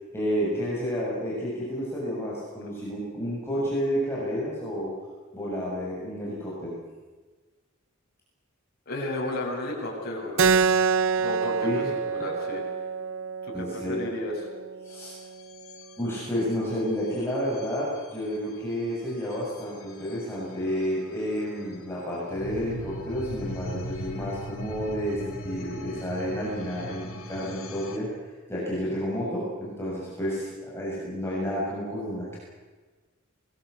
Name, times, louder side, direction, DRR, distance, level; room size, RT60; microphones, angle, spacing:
voice 1, 0.1-4.9 5.3-6.8 11.6-11.9 13.5-14.0 14.8-15.1 16.0-28.1 28.5-32.4, equal, 10° left, -6 dB, 7.0 m, -30 dB
voice 2, 8.9-10.8 11.2-12.6 13.4-14.3, left 2 dB, 50° left, -3 dB, 7.2 m, -33 dB
Keyboard (musical), 10.4-15.5, right 5 dB, 65° right, 0.9 m, -27 dB
sound 1, 14.9-28.0, left 1 dB, 75° left, 3.5 m, -41 dB
26.0 x 20.5 x 8.3 m, 1.4 s
head